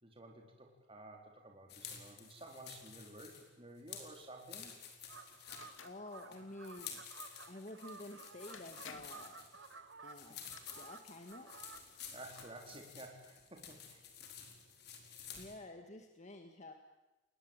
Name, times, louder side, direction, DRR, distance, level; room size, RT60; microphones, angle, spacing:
voice 1, 0.0-4.7 10.3-10.4 12.1-14.0 15.1-15.2, right 1 dB, 30° right, 1 dB, 3.9 m, -53 dB
sound 1, 1.7-15.6, left 7 dB, 55° left, 4.4 m, -52 dB
sound 2, 5.1-12.4, right 5 dB, 70° right, 2.0 m, -55 dB
sound 3, 5.5-6.0 8.0-8.1 8.5-9.3 10.2-10.6, left 6 dB, 75° left, 2.5 m, -53 dB
voice 2, 5.8-7.0 7.5-9.5 10.0-10.4 10.8-11.5 15.3-16.7, left 2 dB, 35° left, 5 dB, 1.8 m, -50 dB
29.5 x 20.5 x 9.0 m, 1.1 s
head